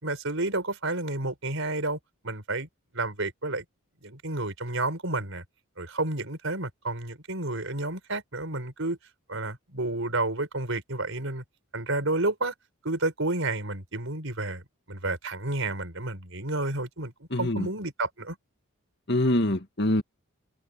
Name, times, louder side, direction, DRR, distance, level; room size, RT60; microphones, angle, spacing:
voice 1, 0.0-2.7 2.9-3.6 4.0-5.4 5.8-9.0 9.3-11.4 11.7-12.5 12.8-14.6 14.9-17.1 17.4-18.4, right 2 dB, 60° right, 5.4 m, -30 dB
voice 2, 17.3-17.7 19.1-20.0, left 1 dB, 50° left, 2.4 m, -24 dB
head